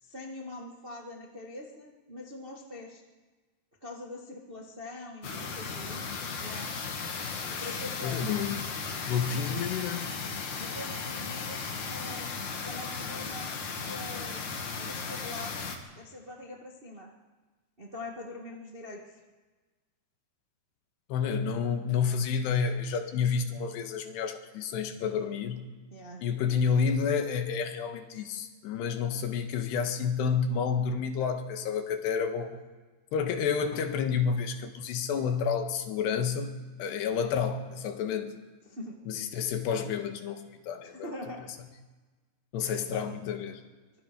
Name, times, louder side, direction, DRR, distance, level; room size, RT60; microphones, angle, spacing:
voice 1, 0.0-3.0 3.8-6.0 6.4-6.7 7.5-8.3 9.1-9.5 10.5-11.6 11.9-12.3 12.6-13.5 13.8-15.6 15.9-17.1 17.8-19.2 25.9-26.2 38.6-39.0 40.8-41.5 42.6-43.1, left 2 dB, 85° right, 0 dB, 0.5 m, -43 dB
sound 1, 5.2-15.8, left 5 dB, 50° left, 2.9 m, -36 dB
voice 2, 7.5-8.6 9.1-10.1 21.1-25.7 26.2-32.6 33.1-38.3 39.1-41.1 42.5-43.6, left 6 dB, 85° left, 6 dB, 3.7 m, -30 dB
24.0 x 21.0 x 5.2 m, 1.3 s
omnidirectional pair, 4.7 m